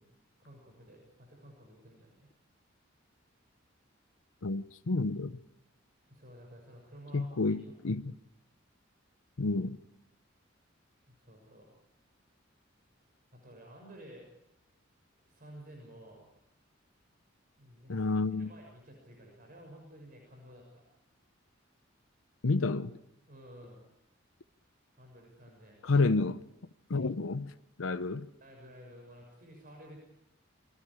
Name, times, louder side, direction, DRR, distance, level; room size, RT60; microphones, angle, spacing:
voice 1, 0.4-2.3 6.1-7.7 11.1-11.7 13.3-14.3 15.2-16.4 17.6-20.8 23.3-23.8 25.0-25.8 28.4-30.0, equal, 45° right, 6.7 m, -53 dB
voice 2, 4.4-5.3 7.1-8.1 9.4-9.8 17.9-18.5 22.4-23.0 25.8-26.4 26.9-27.5 27.8-28.3, left 3 dB, 80° left, 0.8 m, -30 dB
28.5 x 24.0 x 4.9 m
head